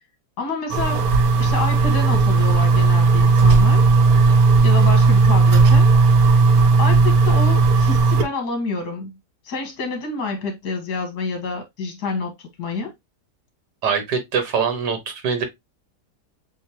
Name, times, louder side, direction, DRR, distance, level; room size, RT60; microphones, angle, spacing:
voice 1, 0.4-1.1 1.4-3.9 4.6-5.9 6.8-9.2 9.5-12.9, left 4 dB, 70° left, 2.1 m, -28 dB
sound 1, 0.7-8.2, right 4 dB, 65° right, 1.2 m, -15 dB
voice 2, 13.8-15.4, right 6 dB, 90° right, 1.9 m, -23 dB
7.0 x 2.6 x 2.9 m
omnidirectional pair, 1.8 m